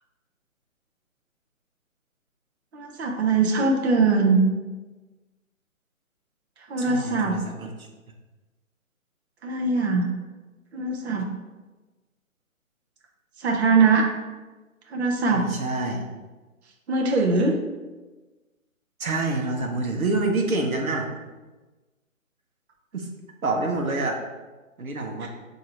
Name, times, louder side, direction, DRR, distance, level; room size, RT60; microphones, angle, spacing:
voice 1, 2.7-4.4 6.7-7.4 9.4-10.1 10.7-11.3 13.4-14.1 14.9-15.5 16.9-17.6 25.2-25.3, right 4 dB, 50° right, 0 dB, 0.7 m, -21 dB
voice 2, 6.8-7.9 15.3-16.0 19.0-21.1 22.9-23.1 23.4-24.2 24.8-25.3, right 2 dB, 90° right, 1 dB, 0.9 m, -27 dB
6.0 x 2.7 x 2.9 m, 1.2 s
figure-of-eight pair, 145°, 41 cm